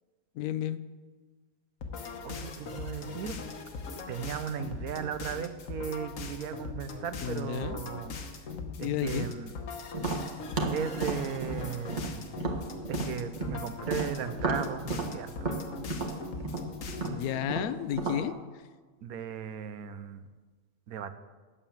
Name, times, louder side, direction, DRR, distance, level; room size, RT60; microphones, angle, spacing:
voice 1, 0.4-0.8 7.2-7.8 8.8-9.3 17.1-18.4, left 11 dB, 80° left, 14 dB, 1.1 m, -32 dB
sound 1, 1.8-17.3, left 4 dB, 65° left, 1.4 m, -40 dB
voice 2, 2.2-3.4 4.1-8.1 8.8-9.5 10.7-12.3 12.9-15.5 19.0-20.3 20.9-21.2, right 8 dB, 80° right, 11 dB, 1.2 m, -36 dB
Tap, 9.9-13.6 13.9-18.2, right 3 dB, 35° right, 1.4 m, -33 dB
9.1 x 8.8 x 7.2 m, 1.4 s
omnidirectional pair, 1.5 m